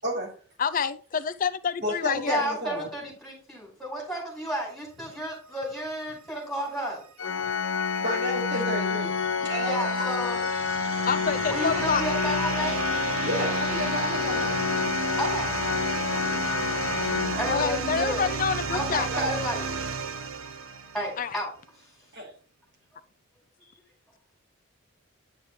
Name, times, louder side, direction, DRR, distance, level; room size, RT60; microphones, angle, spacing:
voice 1, 0.0-0.3 1.8-2.9 8.0-9.1 9.4-10.1 13.2-14.6 19.1-19.4 22.1-22.3, equal, 55° right, 4.8 m, -31 dB
voice 2, 0.6-2.4 8.0-8.2 11.1-12.0 17.5-19.1 21.2-21.4, left 6 dB, 40° left, 0.4 m, -27 dB
voice 3, 2.2-7.0 9.6-10.5 11.5-12.8 15.2-15.5 17.4-18.3 18.7-19.7 20.9-21.5, equal, ahead, 5.1 m, -32 dB
Organ, 7.2-18.0, left 5 dB, 75° left, 0.7 m, -29 dB
sound 1, 7.5-21.3, right 4 dB, 80° right, 0.8 m, -33 dB
10.0 x 7.3 x 3.2 m
head